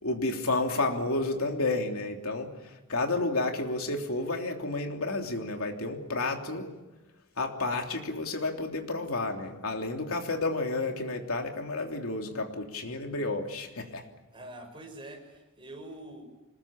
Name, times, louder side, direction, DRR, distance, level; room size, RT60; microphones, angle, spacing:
voice 1, 0.0-6.7 7.4-14.0, left 2 dB, 70° left, 3 dB, 3.3 m, -31 dB
voice 2, 14.3-16.2, right 1 dB, 25° right, 2 dB, 6.0 m, -45 dB
25.0 x 21.0 x 8.8 m, 1.1 s
head